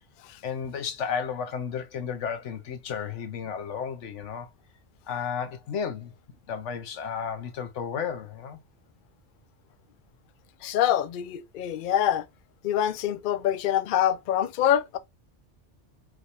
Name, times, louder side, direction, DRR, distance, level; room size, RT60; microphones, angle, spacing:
voice 1, 0.4-4.5 5.1-6.1 6.5-8.6, left 7 dB, 85° left, 1.2 m, -33 dB
voice 2, 10.6-12.2 12.6-15.0, left 10 dB, 60° left, 0.6 m, -25 dB
4.9 x 2.7 x 3.1 m
omnidirectional pair, 1.2 m